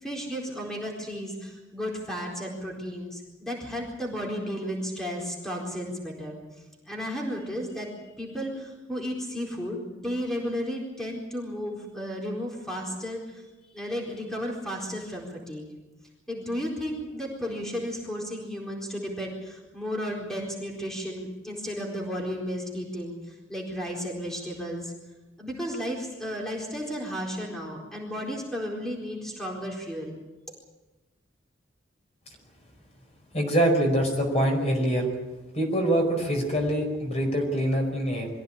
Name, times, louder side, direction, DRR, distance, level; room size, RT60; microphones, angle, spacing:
voice 1, 0.0-6.4 6.9-13.2 13.7-15.6 16.3-24.9 25.4-30.2, equal, 5° left, -2 dB, 4.3 m, -33 dB
voice 2, 33.3-35.1 35.5-38.3, right 1 dB, 35° left, 2 dB, 5.1 m, -24 dB
23.5 x 15.5 x 8.8 m, 1.1 s
head